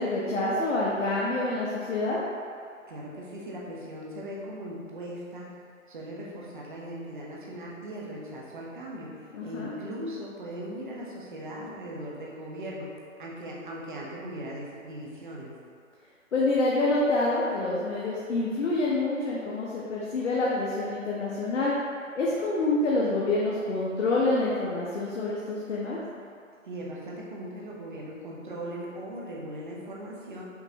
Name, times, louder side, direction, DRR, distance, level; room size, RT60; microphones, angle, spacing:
voice 1, 0.0-2.2 9.3-9.7 16.3-21.7 22.1-26.0, left 2 dB, 60° left, -5 dB, 0.8 m, -27 dB
voice 2, 2.9-5.5 5.9-12.9 13.2-15.5 26.6-30.4, right 1 dB, 35° right, -4 dB, 0.8 m, -39 dB
5.9 x 3.1 x 2.7 m, 2.3 s
hypercardioid pair, 165°, 41 cm